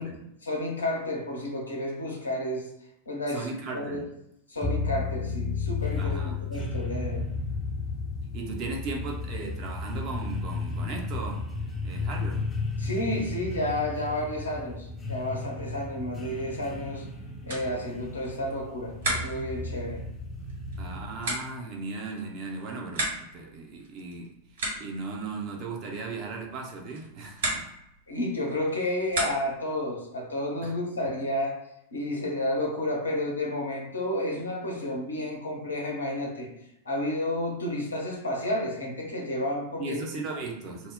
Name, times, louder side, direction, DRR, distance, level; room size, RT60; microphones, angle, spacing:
voice 1, 0.4-2.7 3.1-3.5 3.7-4.0 4.5-7.3 12.8-17.0 17.4-20.0 28.1-31.6 31.9-36.5 36.8-40.0 40.3-40.4, left 1 dB, 75° left, -1 dB, 0.7 m, -31 dB
voice 2, 3.3-4.1 6.0-6.4 8.3-11.5 11.8-12.5 20.8-27.7 30.6-30.8 39.8-40.9, right 3 dB, 40° right, 1 dB, 0.5 m, -37 dB
sound 1, 4.6-21.4, left 3 dB, 20° left, 0.5 m, -33 dB
sound 2, 17.4-29.7, right 1 dB, 60° right, 1.3 m, -37 dB
2.5 x 2.0 x 3.5 m, 0.81 s
figure-of-eight pair, 90°, 0 cm